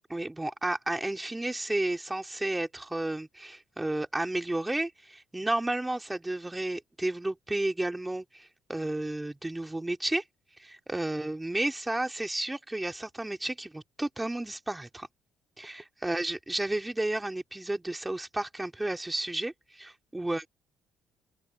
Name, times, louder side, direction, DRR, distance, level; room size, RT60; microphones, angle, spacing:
voice 1, 0.1-10.2 10.6-15.1 15.6-20.5, right 2 dB, 15° right, 4.0 m, -32 dB
open air
supercardioid pair, 60°, 0 cm